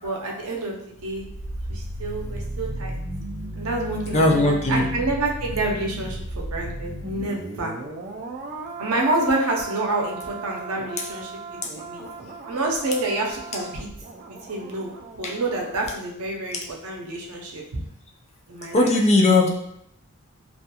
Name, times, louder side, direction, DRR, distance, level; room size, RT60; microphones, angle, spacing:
voice 1, 0.0-1.3 1.7-2.9 3.6-7.7 8.8-12.0 12.5-13.9 14.3-17.8 18.5-18.9, right 2 dB, 85° right, 0 dB, 0.6 m, -28 dB
sound 1, 0.9-15.9 16.2-16.3, right 2 dB, 40° right, 0.3 m, -35 dB
voice 2, 4.1-4.9 11.6-11.7 15.2-15.3 18.7-19.5, left 2 dB, 30° left, 0 dB, 0.4 m, -18 dB
2.4 x 2.2 x 2.8 m, 0.72 s
head